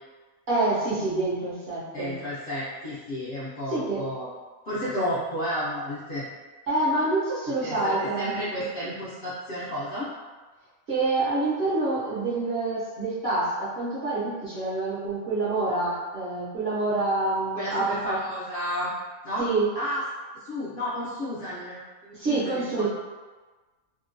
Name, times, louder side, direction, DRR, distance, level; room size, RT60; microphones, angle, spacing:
voice 1, 0.5-2.1 3.7-4.0 6.7-8.4 10.9-18.2 19.4-19.7 22.1-22.9, right 2 dB, 55° right, -9 dB, 0.9 m, -27 dB
voice 2, 1.9-4.3 4.7-6.2 7.6-10.1 17.5-18.9 19.2-19.5 19.7-20.0 20.3-22.9, equal, 55° left, -11 dB, 0.7 m, -32 dB
2.9 x 2.2 x 2.5 m, 1.3 s
omnidirectional pair, 1.5 m